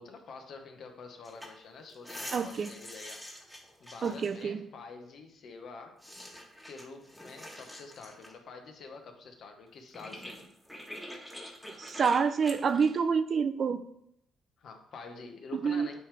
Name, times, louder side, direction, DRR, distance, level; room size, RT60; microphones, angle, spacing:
voice 1, 0.0-3.2 3.8-6.0 6.7-10.3 14.6-16.0, left 4 dB, 65° left, 5 dB, 0.9 m, -47 dB
sound 1, 1.2-1.5 1.8-4.4 6.0-8.3 9.7-9.8 9.9-13.0, equal, 5° left, 1.3 m, -45 dB
voice 2, 2.3-2.7 4.0-4.6 11.8-13.8 15.5-15.9, right 6 dB, 50° right, 11 dB, 0.4 m, -28 dB
9.2 x 3.3 x 3.4 m, 0.75 s
cardioid pair, 90°, 0 cm